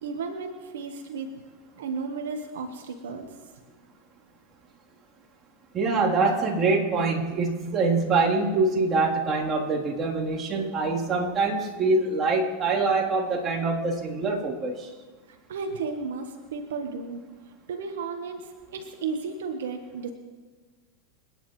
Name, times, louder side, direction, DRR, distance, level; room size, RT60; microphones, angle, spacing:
voice 1, 0.0-1.3 1.8-3.4 15.3-17.2 17.7-20.1, right 4 dB, 85° right, 5 dB, 1.3 m, -34 dB
voice 2, 5.7-14.9, right 3 dB, 30° right, -4 dB, 3.5 m, -24 dB
28.0 x 9.7 x 3.2 m, 1.4 s
hypercardioid pair, 105°, 0 cm